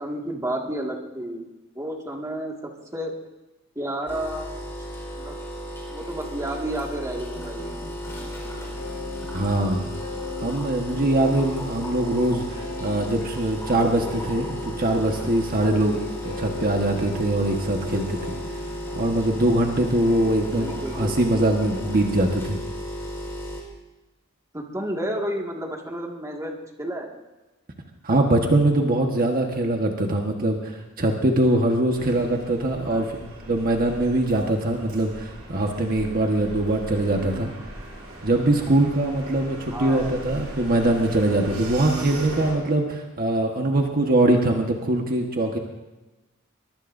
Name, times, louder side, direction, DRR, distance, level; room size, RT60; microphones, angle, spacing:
voice 1, 0.0-1.5 1.8-3.1 3.8-4.5 5.2-5.4 5.9-7.7 20.5-21.3 24.5-27.1 32.9-33.1 37.2-37.4 39.7-40.2 41.8-42.1, right 1 dB, 15° right, 0 dB, 2.0 m, -31 dB
sound 1, 4.1-23.6, equal, 15° left, 4.6 m, -34 dB
sound 2, 7.1-22.1, left 2 dB, 85° left, 4.2 m, -40 dB
voice 2, 9.3-10.0 10.4-16.0 16.2-18.3 18.9-22.6 28.0-37.5 38.2-45.6, right 1 dB, 45° right, 2 dB, 1.4 m, -22 dB
sound 3, 31.9-42.5, right 1 dB, 85° right, 6.5 m, -39 dB
23.0 x 22.5 x 2.7 m, 1.1 s
head